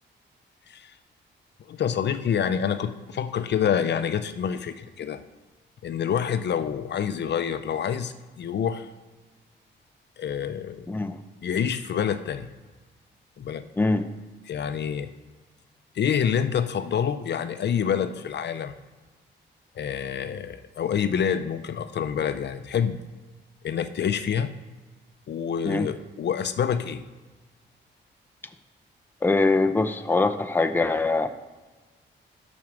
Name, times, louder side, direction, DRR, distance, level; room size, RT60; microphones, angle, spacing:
voice 1, 1.7-5.2 5.8-8.9 10.2-10.9 11.4-12.5 13.4-13.6 14.5-15.1 15.9-18.7 19.8-23.0 23.6-24.5 25.3-27.0, left 8 dB, 60° left, 11 dB, 0.5 m, -27 dB
voice 2, 10.9-11.2 13.8-14.1 25.6-25.9 29.2-31.3, left 3 dB, 10° left, 6 dB, 0.6 m, -23 dB
7.3 x 6.1 x 6.1 m, 1.3 s
cardioid pair, 80°, 20 cm